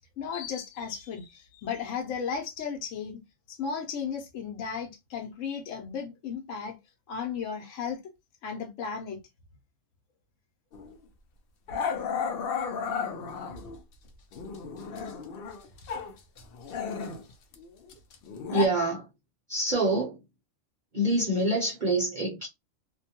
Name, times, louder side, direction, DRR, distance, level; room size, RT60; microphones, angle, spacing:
voice 1, 0.2-3.2 3.5-6.8 7.1-8.0 8.4-9.2, left 6 dB, 85° left, 1.0 m, -35 dB
Growling, 10.7-10.9 11.7-13.8 14.3-16.1 16.4-18.7, left 6 dB, 60° left, 0.6 m, -34 dB
voice 2, 18.5-19.1 19.5-20.2 20.9-22.5, right 1 dB, 45° right, 0.8 m, -26 dB
2.5 x 2.2 x 2.8 m
omnidirectional pair, 1.3 m